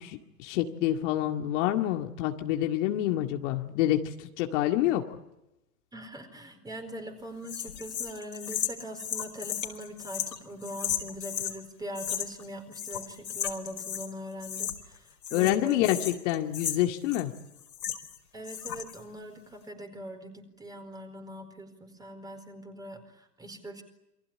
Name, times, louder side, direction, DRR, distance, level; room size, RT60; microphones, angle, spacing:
voice 1, 0.0-5.0 15.3-17.3, left 13 dB, 45° left, 3 dB, 2.2 m, -27 dB
voice 2, 5.9-16.0 18.3-23.8, equal, 10° right, 7 dB, 4.5 m, -42 dB
sound 1, 7.5-11.6 12.0-12.5 12.7-14.1 14.4-15.0 15.2-18.2 18.4-19.0, left 9 dB, 75° left, 4.9 m, -35 dB
28.0 x 23.5 x 8.8 m, 0.91 s
hypercardioid pair, 125°, 50 cm